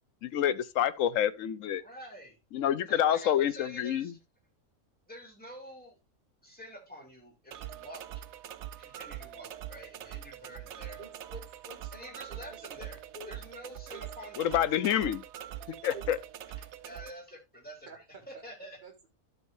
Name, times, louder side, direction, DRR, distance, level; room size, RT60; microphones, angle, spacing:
voice 1, 0.2-1.8 2.5-4.1 14.4-15.2 15.8-16.2, left 10 dB, 65° left, 1.0 m, -27 dB
voice 2, 1.8-2.4 2.8-4.2 5.1-6.0 6.4-8.2 8.7-11.0 11.9-13.0 13.3-14.5 16.6-18.8, equal, 5° left, 3.1 m, -48 dB
sound 1, 7.5-17.1, right 11 dB, 60° right, 0.8 m, -43 dB
voice 3, 11.0-12.9 13.1-13.3 13.9-14.0 15.9-16.0 17.9-18.0 18.8-19.1, right 2 dB, 35° right, 2.0 m, -48 dB
12.0 x 6.7 x 2.6 m
omnidirectional pair, 1.6 m